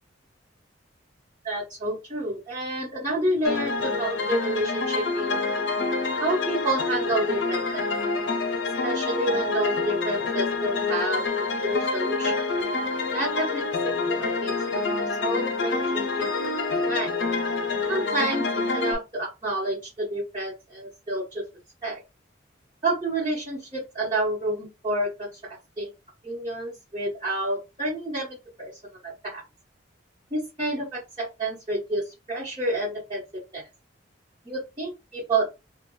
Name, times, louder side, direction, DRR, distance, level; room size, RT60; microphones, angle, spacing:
voice 1, 1.4-5.4 6.2-7.9 8.8-11.2 11.6-12.5 13.1-14.5 15.2-16.3 16.9-17.1 17.9-21.4 21.8-22.0 22.8-25.9 26.2-29.4 30.3-33.2 33.5-33.6 34.4-35.4, right 1 dB, 25° right, -8 dB, 1.2 m, -29 dB
sound 1, 3.4-18.9, left 3 dB, 65° left, 0.7 m, -27 dB
3.1 x 2.3 x 3.0 m, 0.26 s
head